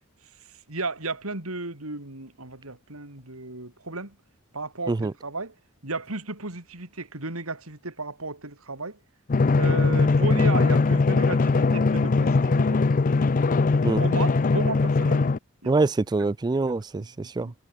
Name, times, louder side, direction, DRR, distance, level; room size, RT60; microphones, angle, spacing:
voice 1, 0.7-4.2 4.5-5.5 5.8-9.0 9.6-12.8 14.0-15.3 15.6-15.7 17.0-17.5, right 3 dB, 85° right, 4.3 m, -34 dB
Drum, 9.3-15.4, left 3 dB, 40° left, 0.5 m, -21 dB
voice 2, 15.6-17.5, right 3 dB, 20° right, 0.3 m, -25 dB
head